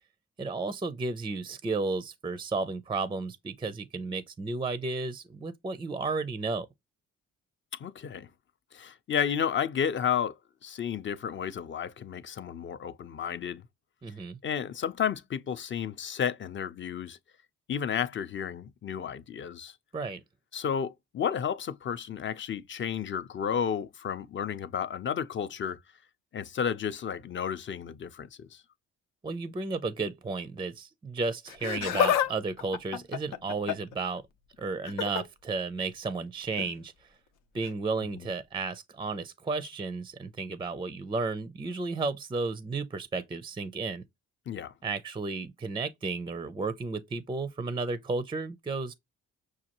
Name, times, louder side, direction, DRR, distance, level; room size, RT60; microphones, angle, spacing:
voice 1, 0.4-6.7 14.0-14.4 19.9-20.2 29.2-34.2 34.6-36.9 37.5-44.0 44.8-48.9, right 3 dB, 15° right, 0.4 m, -33 dB
voice 2, 7.8-8.3 8.7-10.3 10.6-13.6 14.4-17.2 17.7-19.7 20.5-25.8 26.3-28.6 38.2-38.3 44.5-44.7, left 8 dB, 40° left, 0.5 m, -32 dB
Laughter, 31.5-32.3 32.6-33.9 34.8-35.2 36.5-36.7 37.6-37.7, left 9 dB, 85° left, 0.7 m, -28 dB
6.2 x 2.3 x 2.9 m
cardioid pair, 90°, 30 cm